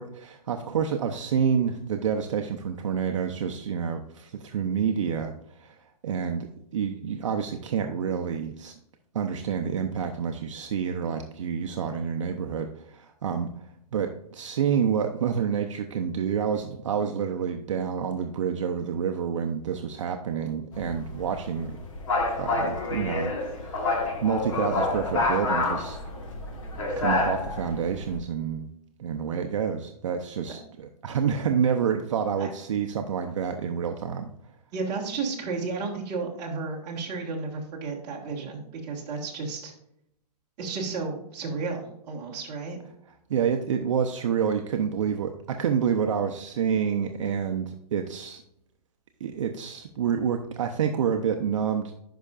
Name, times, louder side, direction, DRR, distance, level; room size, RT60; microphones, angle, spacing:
voice 1, 0.0-5.8 6.0-6.5 6.7-8.7 9.1-21.7 22.4-23.3 23.6-26.0 27.0-28.7 29.0-34.3 43.3-48.4 49.2-52.0, right 7 dB, 50° right, 5 dB, 0.6 m, -28 dB
sound 1, 20.7-28.2, left 2 dB, 50° left, 1.6 m, -28 dB
voice 2, 34.7-39.7 40.6-42.8, right 4 dB, 20° right, -3 dB, 1.5 m, -33 dB
10.0 x 5.6 x 2.4 m, 0.78 s
hypercardioid pair, 175°, 20 cm